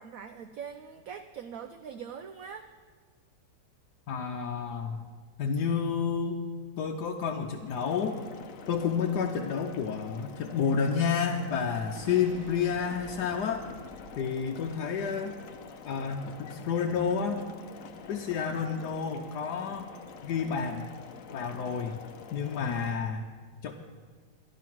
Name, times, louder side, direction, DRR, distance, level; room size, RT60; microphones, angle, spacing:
voice 1, 0.0-2.7, right 7 dB, 65° right, 7 dB, 0.9 m, -42 dB
voice 2, 4.1-5.1 5.4-6.5 6.8-8.2 8.7-13.7 14.1-15.4 15.8-17.4 18.1-19.9 20.2-20.9 21.3-22.0 22.3-23.3 23.6-23.7, left 6 dB, 75° left, 1 dB, 1.3 m, -30 dB
sound 1, 7.7-22.9, left 6 dB, 60° left, 1.0 m, -47 dB
sound 2, 12.0-15.9, right 1 dB, 45° right, 1.2 m, -51 dB
12.5 x 11.0 x 6.1 m, 1.5 s
omnidirectional pair, 1.8 m